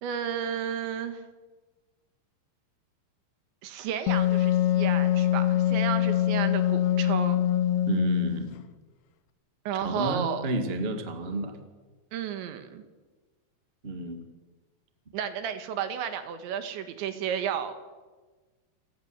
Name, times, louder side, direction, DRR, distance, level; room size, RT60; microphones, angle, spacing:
voice 1, 0.0-1.2 3.6-7.4 9.7-10.5 12.1-12.8 15.1-17.7, right 8 dB, 75° right, 9 dB, 3.8 m, -32 dB
Wind instrument woodwind instrument, 4.1-8.5, left 12 dB, 75° left, 2.6 m, -24 dB
voice 2, 7.8-8.5 9.8-11.5 13.8-14.2, right 2 dB, 55° right, 6 dB, 0.6 m, -30 dB
28.5 x 17.5 x 8.0 m, 1.3 s
omnidirectional pair, 5.5 m